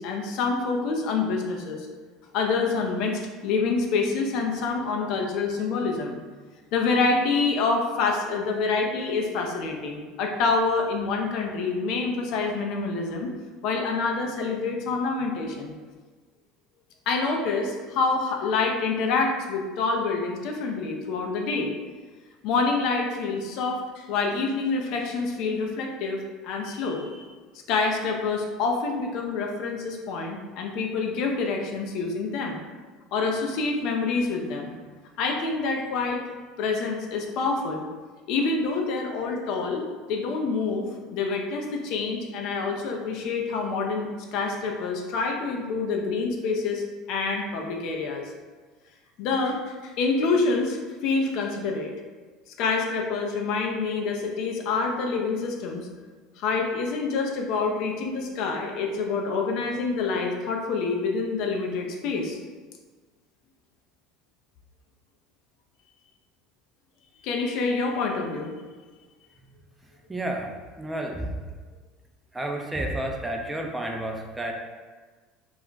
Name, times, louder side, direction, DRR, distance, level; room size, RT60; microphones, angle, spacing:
voice 1, 0.0-1.9 2.3-6.2 6.7-13.3 13.6-15.8 17.1-21.7 22.4-27.2 27.7-32.6 33.1-34.8 35.2-36.2 36.6-37.8 38.3-48.3 49.2-51.9 52.6-55.9 56.4-62.4 67.2-68.5, left 4 dB, 65° left, 2 dB, 0.4 m, -27 dB
voice 2, 70.1-70.5 70.8-71.4 72.3-74.5, right 1 dB, 15° right, 2 dB, 0.4 m, -30 dB
2.3 x 2.1 x 3.8 m, 1.4 s
hypercardioid pair, 85°, 0 cm